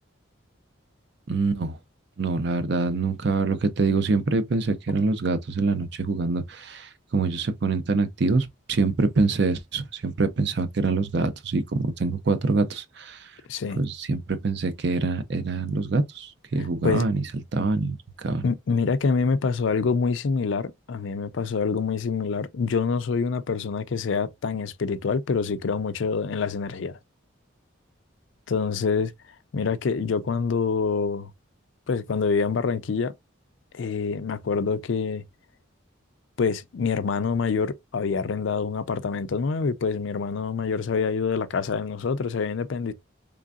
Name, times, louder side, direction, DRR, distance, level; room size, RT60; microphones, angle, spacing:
voice 1, 1.3-1.8 2.2-13.2 13.8-17.2 17.5-18.0 18.2-18.4, right 3 dB, 55° right, 0.5 m, -25 dB
voice 2, 13.5-13.8 16.8-17.1 18.4-26.9 28.5-29.1 29.5-31.3 31.9-33.1 33.7-35.2 36.4-42.9, left 5 dB, 65° left, 0.4 m, -26 dB
3.8 x 3.4 x 2.3 m
head